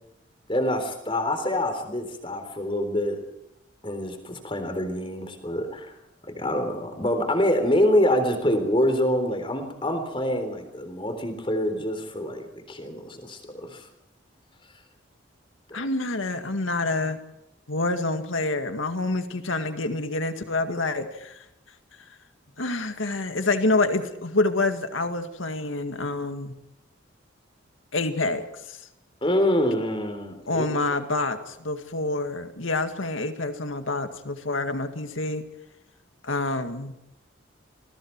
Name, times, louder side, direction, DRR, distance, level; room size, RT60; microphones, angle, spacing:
voice 1, 0.5-3.2 3.8-6.0 6.4-13.8 29.2-30.7, left 1 dB, 25° left, 7 dB, 3.7 m, -26 dB
voice 2, 15.7-17.2 17.7-21.4 22.0-22.1 22.6-26.5 27.9-28.8 30.5-35.5 36.2-36.9, left 2 dB, 80° left, 7 dB, 2.0 m, -27 dB
28.0 x 21.0 x 4.7 m, 0.84 s
head